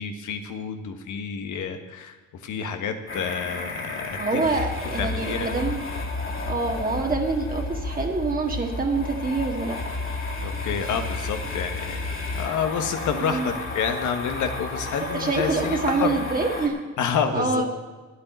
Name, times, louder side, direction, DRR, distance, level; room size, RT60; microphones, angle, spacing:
voice 1, 0.0-4.4 5.0-5.6 10.4-12.0 12.3-16.2 17.0-17.7, left 6 dB, 75° left, 6 dB, 1.4 m, -29 dB
sound 1, 3.1-16.7, left 2 dB, 45° left, 2.8 m, -32 dB
voice 2, 4.2-5.8 6.5-10.0 13.2-13.6 15.0-16.8 17.3-17.8, right 3 dB, 30° right, 1 dB, 1.7 m, -26 dB
10.0 x 8.4 x 9.3 m, 1.3 s
cardioid pair, 90°, 30 cm